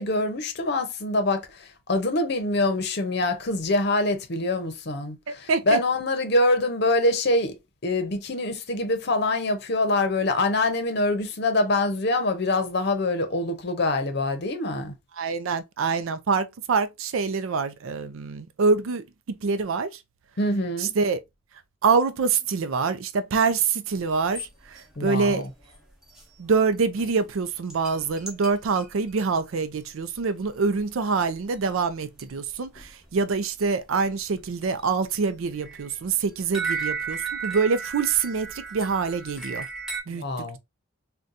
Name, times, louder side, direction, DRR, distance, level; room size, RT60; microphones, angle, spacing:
voice 1, 0.0-7.6 7.8-14.9 20.4-20.9 25.0-25.5 40.1-40.6, left 2 dB, 50° left, 0.7 m, -25 dB
voice 2, 5.5-5.8 15.2-19.0 19.4-19.9 20.8-21.2 21.8-24.5 25.0-25.4 26.4-39.6 40.1-40.2, right 5 dB, 80° right, 0.4 m, -25 dB
sound 1, 23.9-24.5 24.7-24.8 25.2-25.3 25.6-26.2 26.7-26.8 27.0-27.2 27.7-29.3 30.1-30.2 30.4-30.7 30.9-31.0 31.3-31.6 31.9-32.0 32.2-33.2 33.6-33.7 34.1-34.9 35.2-40.0, right 5 dB, 5° right, 0.8 m, -34 dB
3.8 x 2.2 x 2.6 m
head